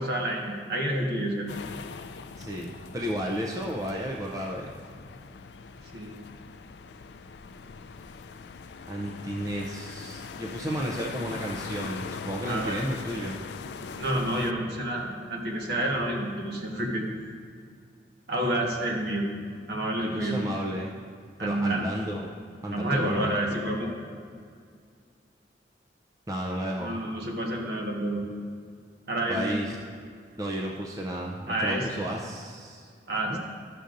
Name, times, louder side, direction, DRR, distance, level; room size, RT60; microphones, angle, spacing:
voice 1, 0.0-1.5 5.9-6.1 12.4-12.9 14.0-17.1 18.3-19.3 19.7-20.4 21.4-21.9 22.7-24.1 26.8-28.2 29.1-29.6 31.5-32.0 33.1-33.4, right 1 dB, 65° right, -1 dB, 1.4 m, -29 dB
sound 1, 1.5-14.5, left 5 dB, 75° left, 0.4 m, -41 dB
voice 2, 2.4-4.7 8.9-13.4 20.0-21.0 21.4-22.3 22.6-23.8 26.3-27.0 29.3-29.8 30.4-32.9 33.3-33.4, equal, 20° right, -1 dB, 0.5 m, -33 dB
12.5 x 6.7 x 2.6 m, 2.2 s
head